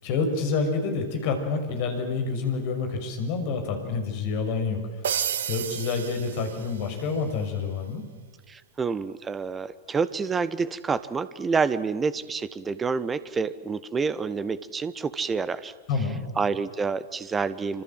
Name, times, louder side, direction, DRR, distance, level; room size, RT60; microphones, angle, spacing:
voice 1, 0.0-4.8 5.5-8.0 15.9-16.3, left 4 dB, 45° left, 5 dB, 6.2 m, -28 dB
sound 1, 5.0-7.1, right 9 dB, 65° right, 1.2 m, -31 dB
voice 2, 8.5-15.7 16.4-17.8, right 5 dB, 20° right, 16 dB, 1.3 m, -28 dB
28.0 x 26.5 x 7.7 m, 1.3 s
figure-of-eight pair, 90°, 0 cm